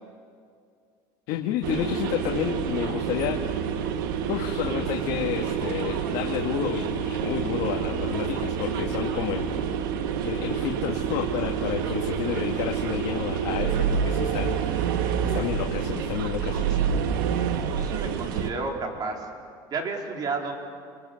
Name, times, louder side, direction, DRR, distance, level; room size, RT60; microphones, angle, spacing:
voice 1, 1.3-3.4 4.3-9.5 10.2-15.0 15.2-16.6, left 10 dB, 70° left, 2 dB, 1.7 m, -30 dB
sound 1, 1.6-18.5, right 7 dB, 90° right, 1.6 m, -28 dB
voice 2, 17.8-19.3 19.7-20.5, right 4 dB, 40° right, 2 dB, 3.8 m, -31 dB
29.0 x 22.5 x 6.5 m, 2.3 s
supercardioid pair, 120°, 11 cm